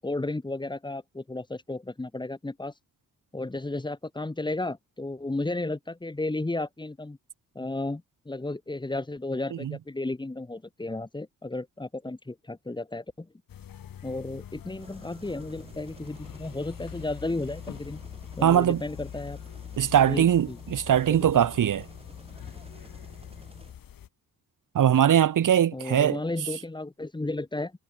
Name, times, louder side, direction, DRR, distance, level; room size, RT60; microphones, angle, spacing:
voice 1, 0.0-2.7 3.3-7.2 7.5-13.3 14.0-18.0 18.4-19.4 20.0-20.6 21.1-21.5 25.7-27.7, left 2 dB, 15° left, 4.3 m, -33 dB
sound 1, 13.5-24.1, left 10 dB, 75° left, 4.0 m, -44 dB
sound 2, 14.8-23.7, right 3 dB, 15° right, 6.7 m, -51 dB
voice 2, 18.4-18.8 19.8-21.8 24.7-26.2, right 10 dB, 65° right, 1.6 m, -21 dB
wide cardioid pair, 170°, 34 cm